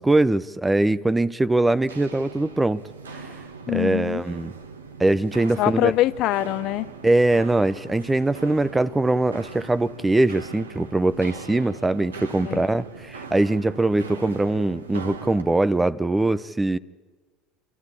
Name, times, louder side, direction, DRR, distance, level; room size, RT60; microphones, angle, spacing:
voice 1, 0.0-2.8 3.1-3.3 3.7-4.5 5.0-5.9 7.0-16.8, right 2 dB, 10° right, 0.6 m, -22 dB
Walk footsteps, 1.7-15.5, right 4 dB, 85° right, 1.4 m, -40 dB
voice 2, 3.7-4.2 5.6-6.9 12.4-12.6, left 16 dB, 55° left, 0.7 m, -23 dB
27.5 x 13.0 x 9.8 m
hypercardioid pair, 70°, 0 cm